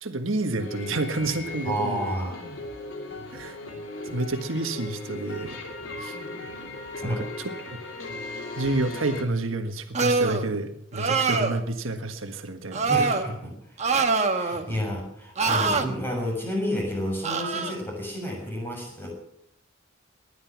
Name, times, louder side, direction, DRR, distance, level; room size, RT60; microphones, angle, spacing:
voice 1, 0.0-2.1 3.3-3.6 4.1-5.6 6.0-6.2 7.0-7.2 7.7-7.8 8.6-12.9, right 2 dB, 85° right, 6 dB, 1.6 m, -29 dB
sound 1, 0.6-9.2, left 2 dB, 70° left, 2.8 m, -37 dB
voice 2, 1.6-2.4 7.0-7.2 12.9-13.5 14.2-19.1, equal, 10° left, 0 dB, 6.7 m, -30 dB
sound 2, 9.9-10.4 10.9-11.6 12.7-13.2 13.8-14.6 15.4-15.9 17.2-17.7, right 4 dB, 35° right, 1.4 m, -24 dB
19.5 x 11.5 x 6.0 m, 0.75 s
head